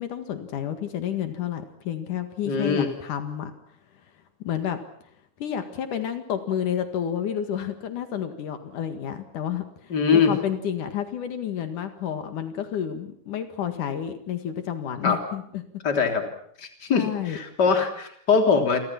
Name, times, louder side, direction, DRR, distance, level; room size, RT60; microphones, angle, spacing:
voice 1, 0.0-3.5 4.4-4.8 5.4-15.6 16.9-17.4, left 9 dB, 80° left, 8 dB, 3.4 m, -30 dB
voice 2, 2.5-2.9 9.9-10.3 15.0-15.2 15.8-16.3 16.6-18.8, left 5 dB, 30° left, 5 dB, 3.8 m, -22 dB
29.0 x 24.5 x 6.0 m, 0.68 s
omnidirectional pair, 3.6 m